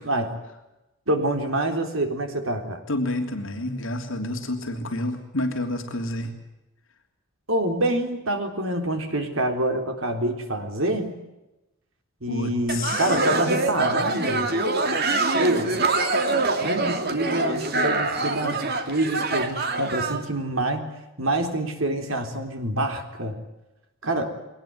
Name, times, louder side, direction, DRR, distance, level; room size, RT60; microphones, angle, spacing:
voice 1, 0.0-0.3 1.1-2.8 7.5-11.2 12.2-14.5 15.3-15.8 16.6-20.8 21.2-23.4 24.0-24.4, right 1 dB, 70° right, 5 dB, 3.8 m, -26 dB
voice 2, 2.9-6.3 12.3-13.2, left 1 dB, 65° left, 4 dB, 3.1 m, -29 dB
sound 1, 12.7-20.2, right 2 dB, 45° right, 2.5 m, -25 dB
22.5 x 19.0 x 9.5 m, 0.97 s
head